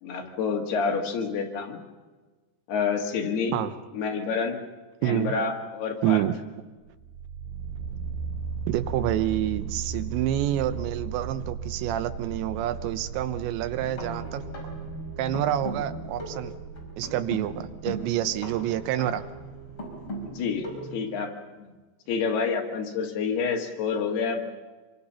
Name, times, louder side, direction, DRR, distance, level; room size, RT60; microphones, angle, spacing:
voice 1, 0.0-1.8 2.7-3.6 3.9-4.6 5.0-6.2 20.2-21.3 21.6-21.7 22.1-24.4, left 5 dB, 65° left, 2 dB, 3.9 m, -28 dB
voice 2, 5.0-5.3 6.0-6.3 8.7-14.4 15.2-16.5 17.0-19.2, right 12 dB, 85° right, 11 dB, 3.3 m, -28 dB
sound 1, 6.9-20.3, right 6 dB, 70° right, 2.6 m, -37 dB
sound 2, 13.7-21.0, right 1 dB, 30° left, 6.2 m, -39 dB
26.5 x 23.5 x 5.7 m, 1.3 s
omnidirectional pair, 5.0 m